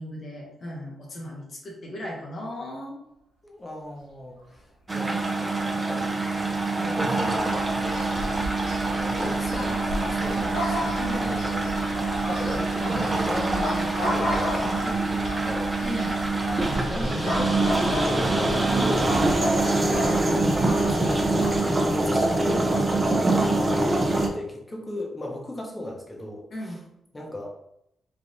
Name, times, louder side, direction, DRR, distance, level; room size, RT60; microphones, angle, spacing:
voice 1, 0.0-3.0 11.0-11.3 15.8-16.2 23.4-23.6 26.5-26.8, left 1 dB, 55° left, -2 dB, 0.7 m, -36 dB
voice 2, 3.4-4.7 4.9-6.1 6.8-8.0 8.9-11.7 12.3-15.7 16.8-20.6 20.9-21.2 21.8-26.8 27.1-27.5, left 1 dB, 25° left, -1 dB, 0.8 m, -36 dB
sound 1, 4.9-24.3, right 2 dB, 30° right, 0.6 m, -25 dB
sound 2, 6.3-21.6, equal, 80° left, 1.0 m, -33 dB
3.3 x 2.4 x 2.6 m, 0.79 s
hypercardioid pair, 40°, 0 cm